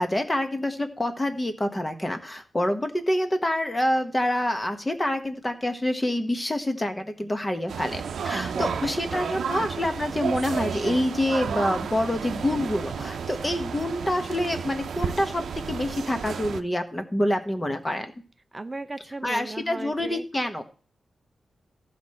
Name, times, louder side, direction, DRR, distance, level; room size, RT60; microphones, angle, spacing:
voice 1, 0.0-18.1 19.2-20.6, left 1 dB, 20° left, 7 dB, 1.1 m, -27 dB
sound 1, 7.7-16.6, right 7 dB, 90° right, 0.6 m, -32 dB
voice 2, 8.3-9.4 18.5-20.2, right 2 dB, 25° right, 10 dB, 0.4 m, -37 dB
15.0 x 5.0 x 4.3 m, 0.40 s
wide cardioid pair, 120°, 0 cm